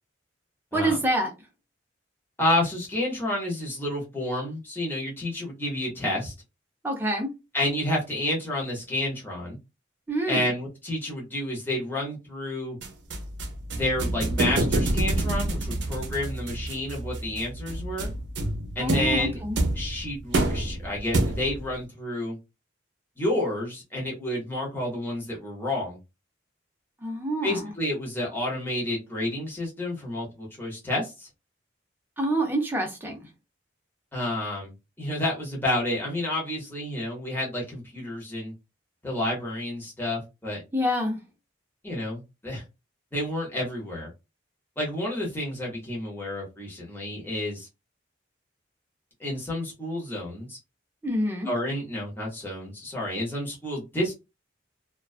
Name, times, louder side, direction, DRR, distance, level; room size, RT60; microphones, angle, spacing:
voice 1, 0.7-1.3 6.8-7.3 10.1-10.4 18.8-19.6 27.0-27.6 32.2-33.2 40.7-41.2 51.0-51.5, right 1 dB, 10° right, 0.6 m, -26 dB
voice 2, 2.4-6.3 7.5-9.6 10.3-12.8 13.7-18.1 18.7-19.4 19.7-22.4 23.2-26.0 27.4-31.3 34.1-34.7 35.0-38.5 39.0-40.6 41.8-42.6 43.1-44.1 44.8-47.7 49.2-50.6 51.4-54.1, left 1 dB, 10° left, 0.9 m, -30 dB
sound 1, 12.8-21.7, right 1 dB, 70° right, 0.6 m, -28 dB
2.3 x 2.3 x 2.4 m
head